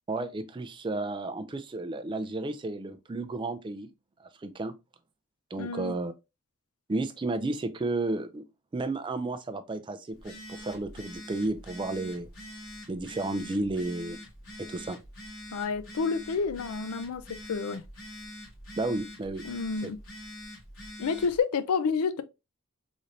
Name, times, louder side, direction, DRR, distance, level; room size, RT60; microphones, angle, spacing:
voice 1, 0.1-3.9 4.2-4.7 5.5-6.1 6.9-8.5 8.7-12.3 12.9-14.2 14.6-15.0 18.8-19.4, right 2 dB, 20° right, 0.3 m, -32 dB
voice 2, 5.6-6.0 15.5-17.2 17.5-17.8 19.4-20.0 21.0-22.2, left 5 dB, 90° left, 0.4 m, -29 dB
Telephone, 10.1-21.4, left 1 dB, 70° left, 2.0 m, -45 dB
3.9 x 3.2 x 2.6 m
head